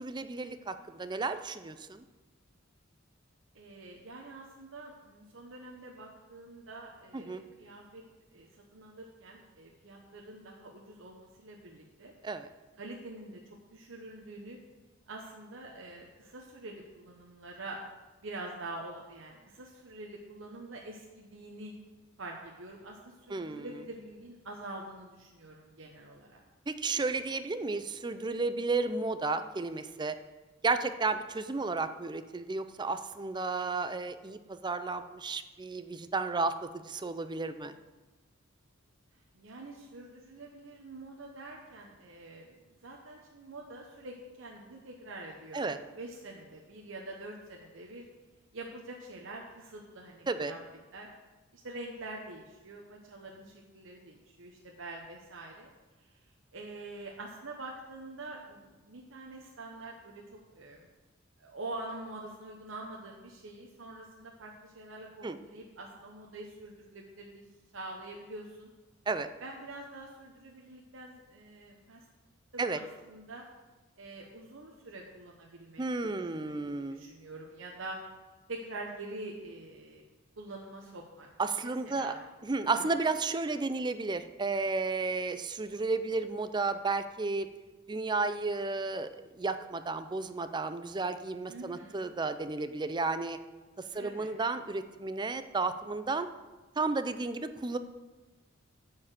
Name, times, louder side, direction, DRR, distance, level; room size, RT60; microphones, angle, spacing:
voice 1, 0.0-2.0 7.1-7.4 12.2-12.5 23.3-23.7 26.7-30.1 30.6-37.7 45.5-45.8 50.3-50.5 65.2-65.4 69.1-69.3 72.6-72.8 75.8-77.0 81.4-82.1 82.4-87.5 87.9-89.1 89.4-93.4 93.8-96.3 96.8-97.8, right 3 dB, 20° right, 10 dB, 0.5 m, -33 dB
voice 2, 3.5-8.0 8.3-12.1 12.8-13.4 13.7-14.6 15.1-17.8 18.2-21.7 22.2-26.4 39.3-42.5 42.8-48.0 48.5-50.6 50.9-51.1 51.6-55.7 56.0-56.1 56.5-60.8 61.4-67.5 67.7-68.7 69.4-72.0 72.5-73.4 74.0-78.0 78.5-80.0 80.4-81.3 81.6-82.2 82.7-82.8 91.5-92.1 93.9-94.3, right 2 dB, 70° right, 0 dB, 1.0 m, -45 dB
9.5 x 4.8 x 7.4 m, 1.2 s
head